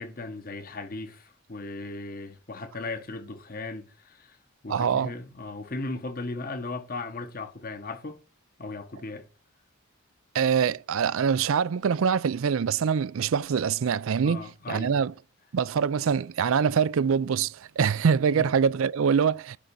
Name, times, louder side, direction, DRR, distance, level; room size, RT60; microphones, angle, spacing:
voice 1, 0.0-4.4 4.6-8.2 8.6-9.3 14.2-15.0 18.3-18.5, left 3 dB, 45° left, 1.1 m, -37 dB
voice 2, 4.7-5.1 10.3-15.1 15.5-19.6, right 6 dB, 70° right, 0.4 m, -24 dB
10.0 x 3.8 x 6.9 m
head